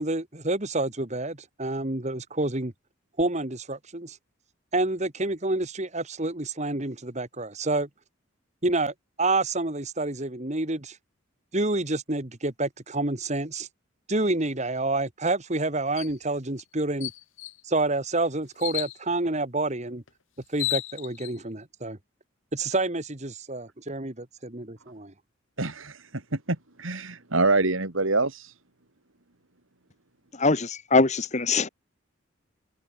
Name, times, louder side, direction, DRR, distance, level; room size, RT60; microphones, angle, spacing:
voice 1, 0.0-2.7 3.2-4.2 4.7-7.9 8.6-11.0 11.5-13.7 14.1-17.1 17.6-20.0 20.5-22.0 22.5-25.1, right 2 dB, 35° right, 2.0 m, -28 dB
sound 1, 16.0-16.2 16.6-16.7 17.0-17.6 18.6-19.0 20.1-20.2 20.4-21.3, left 16 dB, 65° left, 1.3 m, -32 dB
voice 2, 25.6-26.0 26.3-26.4 26.8-28.5, right 3 dB, 70° right, 2.8 m, -25 dB
voice 3, 30.3-31.7, left 3 dB, 35° left, 1.3 m, -22 dB
head